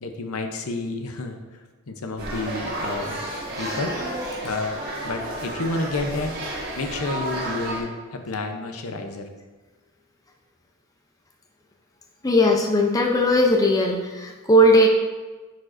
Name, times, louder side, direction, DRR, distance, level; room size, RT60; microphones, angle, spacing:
voice 1, 0.0-1.4 1.9-3.3 3.6-3.9 4.4-6.3 6.8-9.3, left 2 dB, 70° left, 5 dB, 0.7 m, -30 dB
sound 1, 2.2-7.8, right 1 dB, 45° right, 1.6 m, -31 dB
voice 2, 12.2-14.9, equal, 15° left, 1 dB, 0.5 m, -18 dB
10.0 x 4.9 x 2.6 m, 1.3 s
head